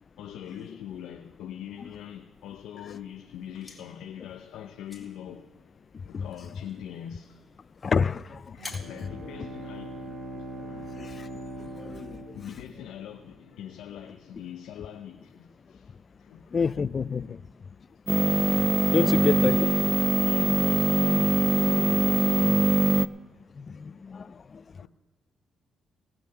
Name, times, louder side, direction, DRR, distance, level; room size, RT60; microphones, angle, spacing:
voice 1, 0.2-5.5 6.1-7.4 8.5-10.2 10.7-11.0 11.6-11.9 12.3-15.9 16.2-16.5 17.2-17.4 18.9-23.0 23.9-24.0 24.8-24.9, left 10 dB, 85° left, 0.7 m, -42 dB
sound 1, 3.3-10.1, left 2 dB, 15° left, 2.6 m, -52 dB
voice 2, 5.9-6.3 7.8-8.8 10.4-11.4 11.8-12.4 16.5-17.4 18.3-19.7 23.6-24.8, left 5 dB, 40° left, 0.3 m, -30 dB
Bowed string instrument, 8.6-13.2, right 1 dB, 55° right, 2.5 m, -41 dB
sound 2, 18.1-23.1, right 2 dB, 25° right, 0.4 m, -22 dB
18.0 x 6.1 x 6.8 m
cardioid pair, 90°, 0 cm